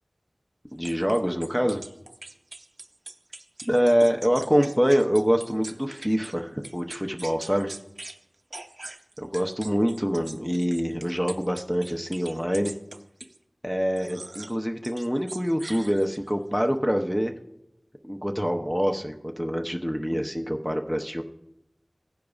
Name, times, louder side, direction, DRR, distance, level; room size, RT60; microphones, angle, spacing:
voice 1, 0.7-1.8 3.6-7.7 9.2-12.7 13.6-17.4 18.0-21.2, equal, 5° left, 3 dB, 0.6 m, -25 dB
sound 1, 0.8-6.3 6.6-8.2 8.5-13.4 14.0-14.6 14.8-16.3, right 2 dB, 70° right, 0.6 m, -42 dB
15.5 x 10.0 x 2.4 m, 0.87 s
wide cardioid pair, 45°, 0 cm